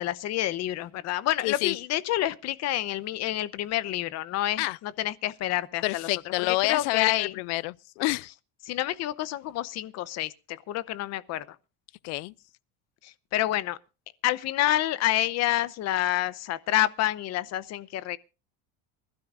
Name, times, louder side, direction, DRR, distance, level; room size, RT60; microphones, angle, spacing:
voice 1, 0.0-7.4 8.7-11.6 13.0-13.8 14.2-18.2, left 14 dB, 45° left, 0.8 m, -28 dB
voice 2, 1.4-1.8 4.6-4.8 5.8-8.3 12.0-12.3, left 22 dB, 85° left, 0.6 m, -28 dB
24.5 x 12.5 x 2.5 m
cardioid pair, 160°, 38 cm